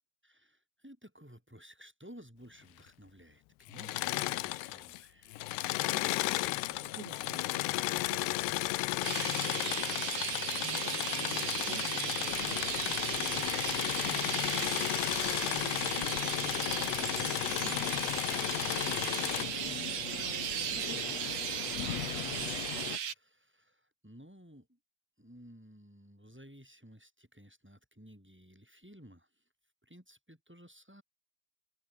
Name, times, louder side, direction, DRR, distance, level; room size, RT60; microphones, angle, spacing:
voice 1, 0.2-5.6 13.4-13.8 17.0-17.4 22.1-22.6 23.1-24.8 25.2-29.4 29.8-31.0, equal, ahead, 7.5 m, -55 dB
Engine / Mechanisms, 3.7-5.0 5.3-19.5, left 18 dB, 80° left, 2.9 m, -34 dB
voice 2, 6.6-8.6 10.6-14.4 15.3-17.9 18.9-19.3 19.6-21.2 22.3-22.8, right 5 dB, 80° right, 8.5 m, -50 dB
Chirp tweet, 9.0-23.1, right 8 dB, 45° right, 2.5 m, -36 dB
sound 1, 12.3-23.0, left 10 dB, 60° left, 1.8 m, -41 dB
omnidirectional pair, 4.8 m